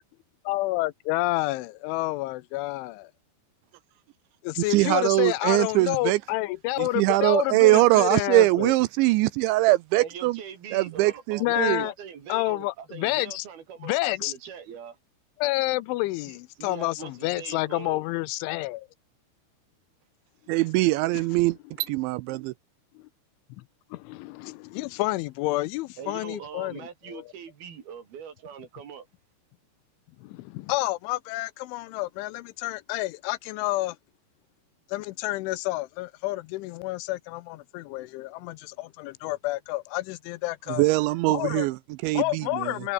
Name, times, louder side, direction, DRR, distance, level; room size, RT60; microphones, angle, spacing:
voice 1, 0.5-3.1 4.4-8.7 11.4-11.9 12.3-13.5 13.8-14.3 15.4-18.9 23.0-23.1 23.9-27.3 30.2-34.0 34.9-40.8 41.3-41.7 42.1-42.9, left 19 dB, 80° left, 3.1 m, -29 dB
voice 2, 4.6-6.2 6.8-10.4 10.7-11.9 20.5-22.5 40.7-42.7, right 19 dB, 80° right, 2.8 m, -22 dB
voice 3, 10.0-15.0 16.6-18.0 26.0-29.1, right 7 dB, 55° right, 4.6 m, -42 dB
omnidirectional pair, 5.5 m